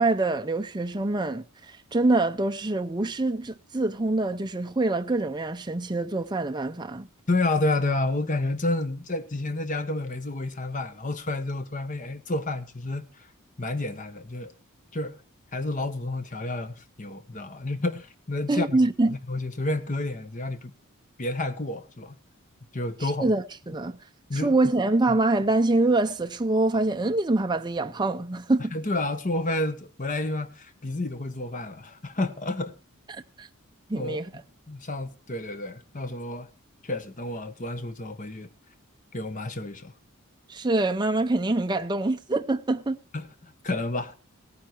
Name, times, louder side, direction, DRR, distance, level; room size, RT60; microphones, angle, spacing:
voice 1, 0.0-7.1 18.5-19.2 23.0-24.0 24.3-28.7 33.1-33.5 33.9-34.3 40.5-43.0, right 2 dB, 20° right, 0.6 m, -25 dB
voice 2, 7.3-13.3 13.6-14.5 14.9-15.2 15.5-18.8 19.1-20.7 21.2-22.2 22.7-23.3 24.3-24.6 25.1-25.2 28.7-32.7 33.9-34.2 34.7-36.5 36.8-38.5 39.1-39.9 43.1-44.1, left 2 dB, 35° left, 1.3 m, -30 dB
16.5 x 9.6 x 4.4 m
head